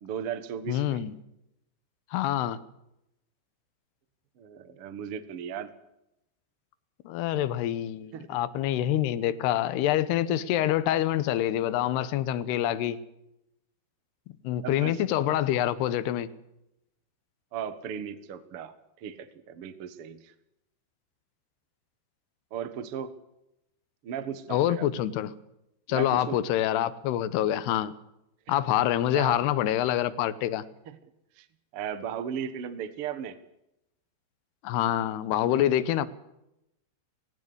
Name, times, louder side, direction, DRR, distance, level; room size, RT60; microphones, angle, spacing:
voice 1, 0.0-1.0 4.4-5.7 8.1-8.4 14.5-15.0 17.5-20.3 22.5-23.1 24.0-24.9 25.9-26.4 28.5-28.6 29.1-29.4 30.9-31.0 31.4-31.5 31.7-33.3, right 8 dB, 70° right, 1.3 m, -36 dB
voice 2, 0.7-1.1 2.1-2.6 7.1-13.0 14.4-16.3 24.5-25.3 25.9-27.9 28.5-30.6 34.6-36.1, left 12 dB, 75° left, 3.0 m, -26 dB
18.5 x 17.5 x 8.1 m
omnidirectional pair, 5.1 m